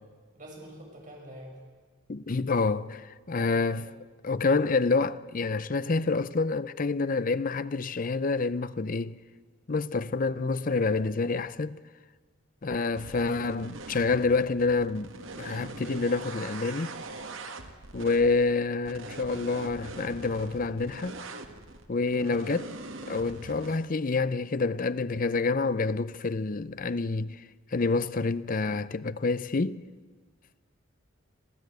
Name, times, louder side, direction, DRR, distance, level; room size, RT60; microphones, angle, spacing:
voice 1, 0.3-1.6 3.4-3.8 13.2-13.4 22.1-22.4, equal, 40° right, 6.3 m, -46 dB
voice 2, 2.1-3.9 4.2-9.2 9.7-11.8 12.6-16.9 17.9-21.2 21.9-22.7 23.1-27.4 27.7-29.8, left 3 dB, 45° left, 0.6 m, -28 dB
sound 1, 12.9-23.8, right 3 dB, 85° right, 1.7 m, -42 dB
27.5 x 15.0 x 8.0 m
head